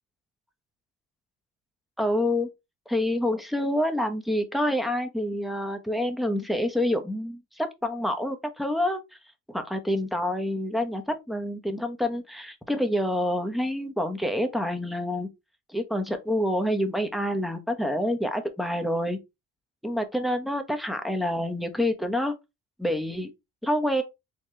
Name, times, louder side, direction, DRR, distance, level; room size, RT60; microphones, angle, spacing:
voice 1, 2.0-2.5 2.9-9.0 9.5-15.3 15.7-19.2 19.8-22.3 22.8-23.3 23.6-24.0, left 1 dB, ahead, 0.9 m, -27 dB
4.3 x 3.1 x 3.1 m
cardioid pair, 90°, 30 cm